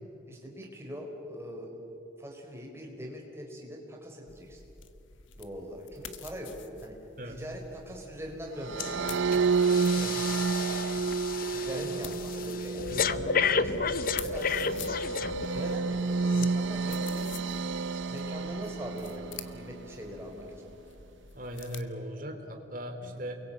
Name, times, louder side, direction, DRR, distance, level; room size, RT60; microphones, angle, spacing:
voice 1, 0.3-1.8 2.2-4.6 5.4-7.0 7.2-9.3 11.5-15.1 15.5-16.0 16.3-17.4 18.1-20.5 23.0-23.2, equal, 15° right, 0 dB, 4.4 m, -42 dB
sound 1, 4.3-21.8, left 7 dB, 75° left, 1.4 m, -48 dB
sound 2, 8.6-19.9, right 4 dB, 70° right, 0.7 m, -30 dB
Breathing, 8.8-9.0 9.3-15.8 16.3-16.5, left 5 dB, 45° left, 0.7 m, -32 dB
voice 2, 9.9-10.3 11.6-12.0 21.3-23.4, equal, 45° right, 4 dB, 3.3 m, -39 dB
29.0 x 22.5 x 8.9 m, 3.0 s
head